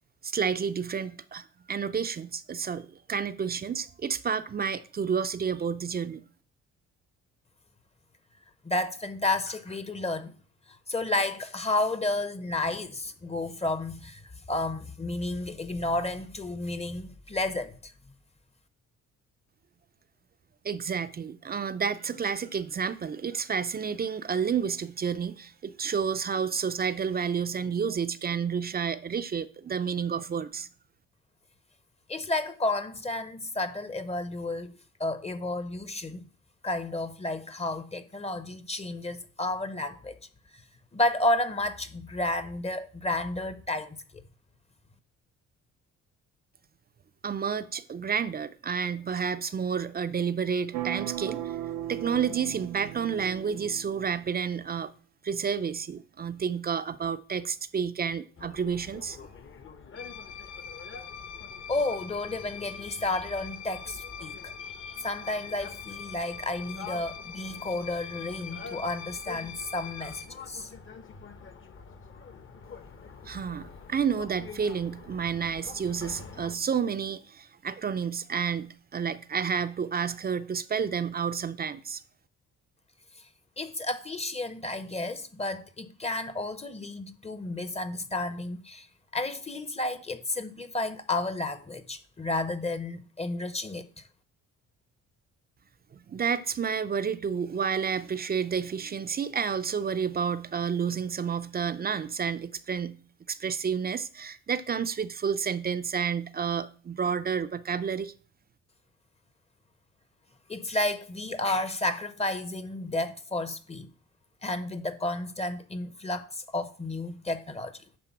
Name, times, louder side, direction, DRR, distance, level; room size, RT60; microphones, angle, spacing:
voice 1, 0.2-6.2 20.6-30.7 47.2-51.6 51.9-54.9 55.2-59.2 73.3-82.0 96.1-103.0 103.3-108.1, right 6 dB, 30° right, 0.5 m, -30 dB
voice 2, 8.6-10.3 10.9-14.2 14.5-17.9 32.1-36.2 36.6-40.2 40.5-40.6 40.9-44.2 61.7-64.5 64.9-70.7 83.6-88.9 89.1-94.0 110.5-113.9 114.4-117.8, left 2 dB, 20° left, 0.8 m, -31 dB
sound 1, 50.7-54.5, right 13 dB, 80° right, 0.7 m, -37 dB
sound 2, 58.4-76.6, left 5 dB, 40° left, 1.0 m, -47 dB
sound 3, 60.0-70.3, left 7 dB, 80° left, 0.9 m, -43 dB
9.8 x 3.7 x 5.9 m
cardioid pair, 90°, 30 cm